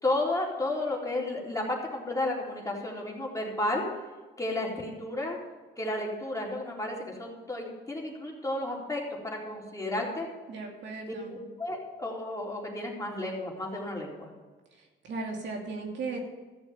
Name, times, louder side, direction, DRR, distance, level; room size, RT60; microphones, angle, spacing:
voice 1, 0.0-3.8 4.4-5.4 5.8-10.3 11.0-14.3, left 2 dB, 15° left, -2 dB, 3.9 m, -32 dB
voice 2, 10.5-11.4 14.7-16.2, right 3 dB, 65° right, 1 dB, 2.7 m, -37 dB
14.5 x 7.2 x 7.3 m, 1.3 s
cardioid pair, 90°, 20 cm